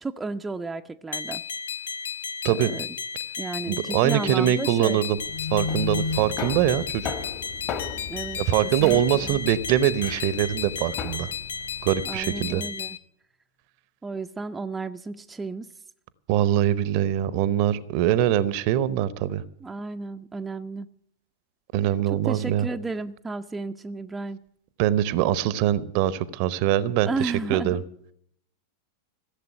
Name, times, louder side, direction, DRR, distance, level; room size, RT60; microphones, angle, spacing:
voice 1, 0.0-1.4 2.5-2.9 3.4-5.0 8.1-8.4 8.8-9.4 12.0-13.0 14.0-15.7 19.6-20.9 22.1-24.4 27.0-27.8, right 3 dB, 10° right, 6 dB, 0.5 m, -33 dB
sound 1, 1.1-13.0, left 6 dB, 65° left, 0.6 m, -34 dB
voice 2, 3.7-5.2 5.5-7.1 8.4-11.3 11.8-12.6 16.3-19.4 21.7-22.7 24.8-27.8, right 11 dB, 45° right, 19 dB, 0.7 m, -23 dB
sound 2, 5.1-12.5, left 2 dB, 90° left, 6.3 m, -47 dB
sound 3, 5.3-11.2, left 5 dB, 40° left, 1.4 m, -33 dB
15.0 x 7.3 x 9.6 m, 0.69 s
figure-of-eight pair, 90°, 0 cm